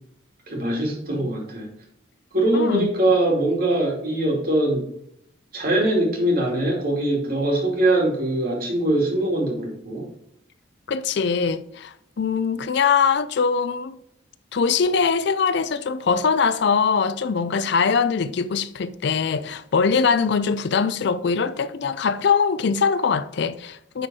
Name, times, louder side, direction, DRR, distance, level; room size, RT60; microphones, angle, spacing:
voice 1, 0.5-1.7 2.3-4.9 5.5-10.1, right 1 dB, 50° right, 2.6 m, -22 dB
voice 2, 2.5-2.9 10.9-14.0 14.5-24.1, left 5 dB, 60° left, 0.4 m, -22 dB
10.0 x 4.5 x 4.8 m
head